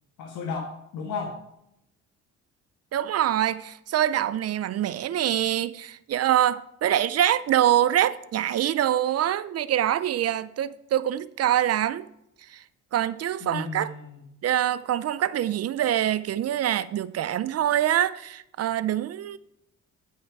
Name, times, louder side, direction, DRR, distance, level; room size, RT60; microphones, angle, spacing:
voice 1, 0.2-1.4 13.4-14.2, left 4 dB, 85° left, 1.5 m, -34 dB
voice 2, 2.9-12.1 12.5-12.6 12.9-13.9 14.4-19.4, right 11 dB, 55° right, 0.5 m, -25 dB
12.5 x 5.6 x 4.7 m
cardioid pair, 90°, 30 cm